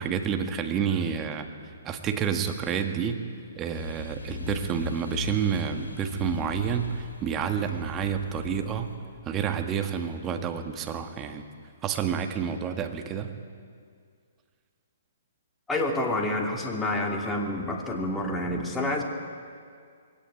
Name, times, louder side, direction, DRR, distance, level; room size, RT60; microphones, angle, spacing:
voice 1, 0.0-1.5 1.8-3.2 3.6-8.9 9.3-11.4 11.8-13.3, right 7 dB, 25° right, 6 dB, 1.8 m, -29 dB
sound 1, 3.7-9.0, left 4 dB, 80° left, 3.7 m, -38 dB
voice 2, 15.7-19.0, left 1 dB, 10° left, 1 dB, 2.8 m, -28 dB
21.5 x 17.5 x 9.6 m, 2.1 s
hypercardioid pair, 130°, 0 cm